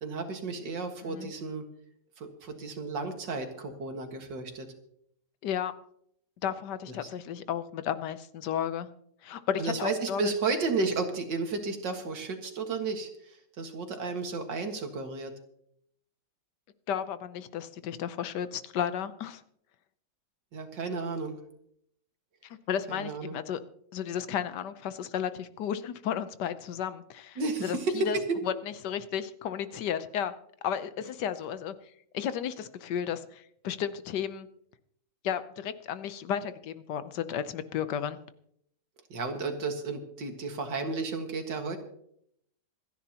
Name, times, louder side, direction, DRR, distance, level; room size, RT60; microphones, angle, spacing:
voice 1, 0.0-1.6 2.2-4.7 7.0-7.1 9.6-15.3 20.5-21.4 22.9-23.4 27.4-28.4 39.1-41.8, right 3 dB, 85° right, 4 dB, 2.4 m, -32 dB
voice 2, 6.4-8.9 9.2-10.3 16.9-19.4 22.7-23.6 23.9-27.8 28.1-28.2 28.5-28.6 28.8-30.3 30.6-31.7 32.1-34.5 35.2-38.2, left 9 dB, 75° left, 12 dB, 1.4 m, -33 dB
26.5 x 10.5 x 2.9 m, 0.70 s
omnidirectional pair, 1.9 m